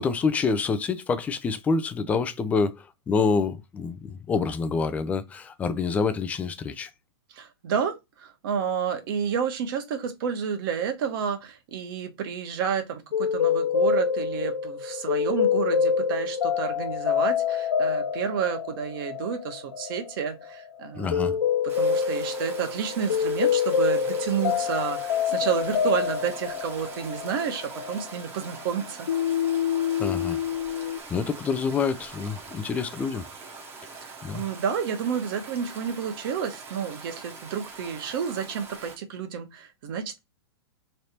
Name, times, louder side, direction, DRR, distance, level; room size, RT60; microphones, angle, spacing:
voice 1, 0.0-6.9 20.9-21.3 30.0-30.4 30.8-33.3 33.8-33.9 34.2-34.4, left 5 dB, 10° left, 0.3 m, -27 dB
voice 2, 7.3-21.4 21.8-29.1 33.9-40.2, right 7 dB, 55° right, 1.1 m, -30 dB
sound 1, 13.1-28.7 29.1-31.0, left 7 dB, 90° left, 0.4 m, -26 dB
Stream, 21.7-39.0, right 4 dB, 15° right, 0.9 m, -43 dB
3.3 x 2.7 x 4.2 m
hypercardioid pair, 145°, 14 cm